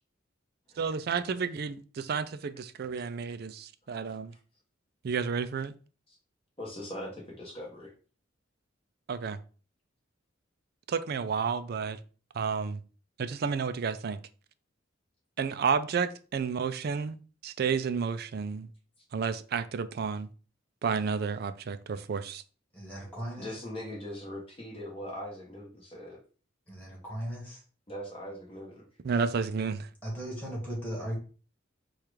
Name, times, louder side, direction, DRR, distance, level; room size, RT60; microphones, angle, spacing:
voice 1, 0.8-4.3 5.0-5.7 9.1-9.4 10.9-12.0 12.3-12.8 13.2-14.2 15.4-17.2 17.4-18.7 19.1-20.3 20.8-22.4 29.0-29.9, right 6 dB, 50° right, 0.4 m, -31 dB
voice 2, 6.6-7.9 23.4-26.2 27.9-28.8, left 1 dB, 30° left, 1.2 m, -41 dB
voice 3, 22.7-23.5 26.7-27.6 30.0-31.2, equal, 10° left, 2.0 m, -37 dB
4.5 x 2.4 x 4.8 m
head